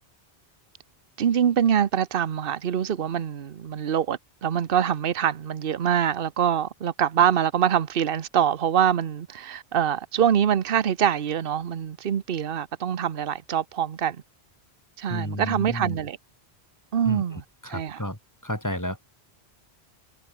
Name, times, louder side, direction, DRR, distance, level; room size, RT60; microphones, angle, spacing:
voice 1, 1.2-14.2 15.0-16.2 16.9-17.4 17.7-18.0, right 9 dB, 60° right, 1.0 m, -24 dB
voice 2, 15.1-16.0 17.1-19.0, left 1 dB, 15° left, 5.5 m, -32 dB
omnidirectional pair, 1.1 m